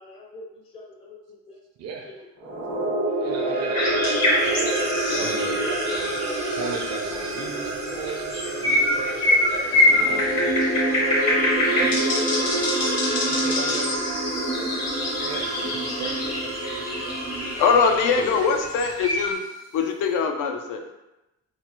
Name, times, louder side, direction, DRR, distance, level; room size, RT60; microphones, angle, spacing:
voice 1, 0.0-1.6 2.0-3.7 4.6-5.6 6.4-6.8 7.3-8.0 8.6-10.9 14.0-15.3 15.9-16.5 16.9-17.6 18.2-18.4, left 2 dB, 20° left, -2 dB, 0.5 m, -43 dB
voice 2, 1.8-2.2 3.2-5.7 5.9-6.3 6.6-12.0 13.2-13.9 15.2-16.4, right 5 dB, 55° right, 2 dB, 0.5 m, -38 dB
sound 1, 2.4-18.8, right 2 dB, 75° right, 0.9 m, -27 dB
sound 2, 3.7-7.3 7.9-19.3, left 1 dB, 60° left, 0.9 m, -25 dB
voice 3, 17.6-19.4 19.7-20.8, left 5 dB, 85° left, 4 dB, 0.5 m, -22 dB
3.1 x 2.1 x 2.9 m, 0.97 s
cardioid pair, 90°, 30 cm